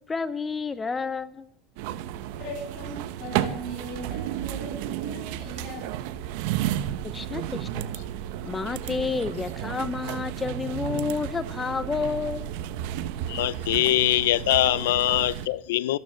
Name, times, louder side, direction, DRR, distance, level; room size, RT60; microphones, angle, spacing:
voice 1, 0.1-1.5 7.0-7.9 8.4-12.5, left 4 dB, 20° left, 0.7 m, -30 dB
sound 1, 1.8-15.5, right 11 dB, 70° right, 1.1 m, -32 dB
voice 2, 2.3-5.9, equal, 55° left, 7.9 m, -39 dB
sound 2, 3.4-13.1, right 5 dB, 40° right, 4.6 m, -47 dB
voice 3, 13.3-16.0, left 15 dB, 85° left, 0.6 m, -23 dB
14.5 x 12.0 x 6.5 m
supercardioid pair, 110°, 0 cm